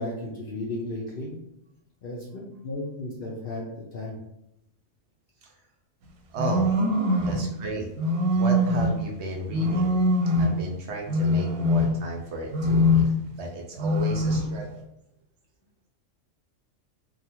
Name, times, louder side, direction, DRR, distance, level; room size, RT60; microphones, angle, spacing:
voice 1, 0.0-1.3 2.0-2.3 2.6-4.2, left 2 dB, 60° left, -3 dB, 0.6 m, -34 dB
voice 2, 6.3-6.7 7.2-7.9 8.3-9.9 10.4-12.8 13.4-14.8, right 2 dB, 65° right, 0 dB, 0.8 m, -33 dB
sound 1, 6.4-7.4 8.0-9.0 9.5-10.6 11.1-12.1 12.5-13.2 13.8-14.5, left 1 dB, 90° right, 1.0 m, -23 dB
2.6 x 2.3 x 2.9 m, 0.82 s
omnidirectional pair, 1.3 m